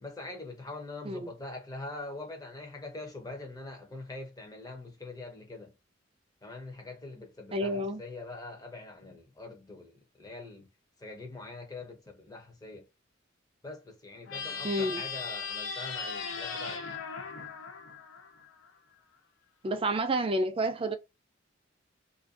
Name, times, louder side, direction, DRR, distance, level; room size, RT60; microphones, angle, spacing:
voice 1, 0.0-5.7 6.4-9.9 10.2-10.7 11.0-12.9 13.6-16.9, left 2 dB, 20° left, 0.6 m, -43 dB
voice 2, 7.5-8.0 14.6-15.0 19.6-21.0, right 1 dB, 30° right, 0.4 m, -29 dB
sound 1, 14.3-18.7, left 5 dB, 90° left, 0.6 m, -38 dB
2.5 x 2.2 x 2.4 m
head